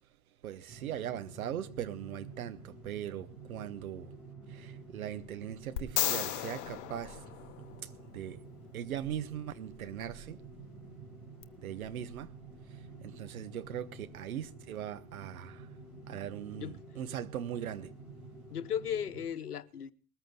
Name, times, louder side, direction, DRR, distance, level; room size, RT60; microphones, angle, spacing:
voice 1, 0.4-4.1 4.5-7.2 7.8-8.4 8.7-10.4 11.6-12.3 12.7-15.7 16.1-17.9, right 10 dB, 60° right, 1.3 m, -40 dB
sound 1, 0.7-19.3, right 3 dB, ahead, 4.4 m, -50 dB
sound 2, 5.8-8.0 11.4-11.5, left 12 dB, 45° left, 1.1 m, -34 dB
voice 2, 16.5-17.0 18.5-19.9, left 9 dB, 70° left, 1.1 m, -36 dB
20.0 x 14.0 x 3.9 m
figure-of-eight pair, 90°, 47 cm